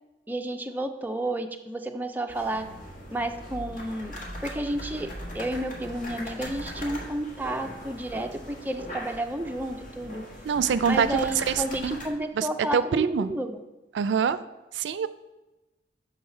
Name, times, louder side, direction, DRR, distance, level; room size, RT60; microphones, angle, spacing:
voice 1, 0.3-2.7 3.1-4.1 4.4-5.1 5.3-10.3 10.9-13.6, right 1 dB, 10° right, 5 dB, 0.4 m, -31 dB
sound 1, 2.3-12.1, equal, 50° left, 1.5 m, -40 dB
voice 2, 10.5-12.0 12.3-13.3 13.9-14.4 14.7-15.1, right 7 dB, 80° right, 14 dB, 0.3 m, -25 dB
7.0 x 3.9 x 5.5 m, 1.1 s
head